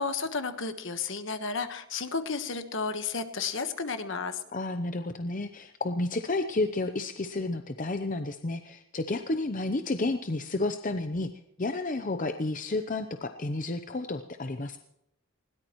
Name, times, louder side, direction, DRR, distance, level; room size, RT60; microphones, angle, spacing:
voice 1, 0.0-4.4, left 4 dB, 60° left, 9 dB, 1.4 m, -32 dB
voice 2, 4.5-11.3 11.6-14.8, left 2 dB, 35° left, 8 dB, 0.7 m, -31 dB
20.5 x 18.0 x 3.1 m, 0.80 s
head